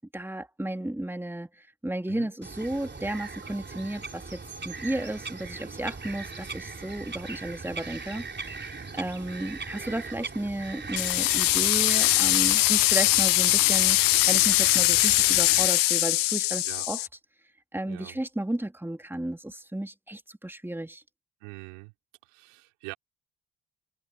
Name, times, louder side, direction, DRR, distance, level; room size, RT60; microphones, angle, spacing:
voice 1, 0.1-14.0 14.3-17.1 17.7-21.0, right 1 dB, 5° right, 2.7 m, -33 dB
Bird vocalization bird call bird song, 2.4-15.7, right 4 dB, 30° right, 4.1 m, -40 dB
voice 2, 9.8-10.2 12.0-12.2 16.6-16.9 17.9-18.2 21.4-21.9 22.2-22.9, right 27 dB, 85° right, 4.7 m, -44 dB
sound 1, 11.0-17.1, left 18 dB, 75° left, 1.1 m, -22 dB
hypercardioid pair, 45°, 33 cm